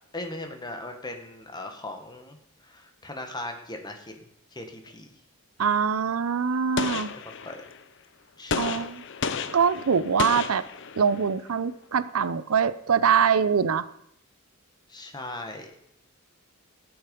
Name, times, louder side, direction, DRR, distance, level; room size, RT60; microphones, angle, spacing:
voice 1, 0.1-2.4 2.6-5.2 7.2-7.6 8.4-8.9 14.9-15.7, left 2 dB, 20° left, 4 dB, 1.4 m, -39 dB
voice 2, 5.6-7.1 8.6-9.0 9.5-10.6 11.0-13.8, right 6 dB, 75° right, 15 dB, 0.6 m, -23 dB
Gunshot gunfire, 6.8-7.8 8.5-11.3, left 5 dB, 55° left, 0.7 m, -32 dB
15.0 x 8.0 x 5.3 m, 0.75 s
head